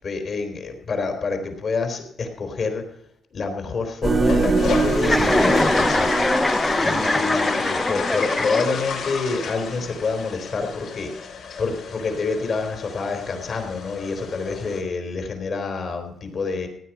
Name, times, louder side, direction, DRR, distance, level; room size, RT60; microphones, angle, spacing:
voice 1, 0.0-2.9 3.3-6.3 6.8-11.3 11.6-16.7, left 4 dB, 50° left, 5 dB, 3.5 m, -27 dB
sound 1, 4.0-8.0, right 4 dB, 40° right, 1.8 m, -24 dB
sound 2, 4.3-14.8, left 5 dB, 75° left, 5.5 m, -31 dB
Chuckle chortle, 5.0-9.0, left 2 dB, 15° left, 0.9 m, -22 dB
16.0 x 9.5 x 6.0 m, 0.77 s
cardioid pair, 90°, 0 cm